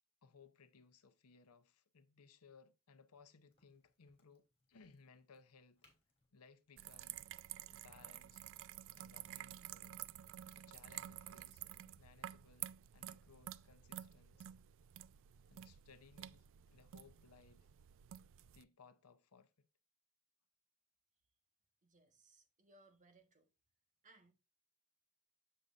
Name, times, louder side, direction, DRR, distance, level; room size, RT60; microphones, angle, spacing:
voice 1, 0.2-5.9 6.3-7.3 7.7-8.4 8.9-10.0 10.5-14.5 15.5-17.7 18.5-19.7, left 5 dB, 75° left, 0.7 m, -64 dB
Crack, 3.5-8.9, left 3 dB, 25° left, 3.0 m, -79 dB
sound 1, 6.8-18.6, right 12 dB, 60° right, 0.3 m, -51 dB
voice 2, 21.8-23.5 24.0-24.3, right 2 dB, 35° right, 1.3 m, -67 dB
7.6 x 6.8 x 2.5 m
head